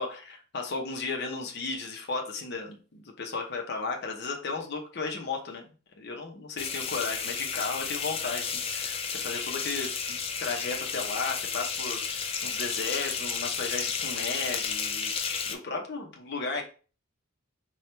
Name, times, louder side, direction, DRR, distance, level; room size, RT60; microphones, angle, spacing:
voice 1, 0.0-5.7 6.0-15.1 15.5-16.6, left 4 dB, 55° left, 2 dB, 0.7 m, -34 dB
sound 1, 6.6-15.5, left 6 dB, 30° left, 0.4 m, -32 dB
4.4 x 2.3 x 3.2 m, 0.37 s
head